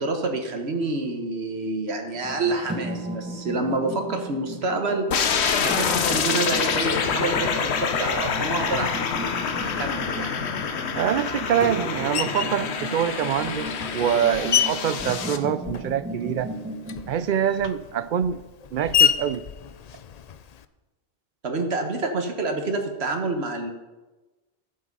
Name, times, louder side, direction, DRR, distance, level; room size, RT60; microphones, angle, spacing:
voice 1, 0.0-5.1 5.6-9.2 9.6-10.3 21.4-23.7, right 3 dB, 75° right, 4 dB, 1.5 m, -28 dB
sound 1, 2.1-17.9, right 1 dB, 10° right, 1.1 m, -36 dB
sound 2, 5.1-15.4, left 6 dB, 80° left, 1.1 m, -26 dB
voice 2, 11.0-16.5 17.1-18.4 18.7-19.4, right 9 dB, 60° right, 15 dB, 0.6 m, -25 dB
Screech, 12.1-12.6 13.4-16.1 16.4-20.7, left 9 dB, 50° left, 0.5 m, -28 dB
11.5 x 7.4 x 5.4 m, 1.1 s
omnidirectional pair, 1.1 m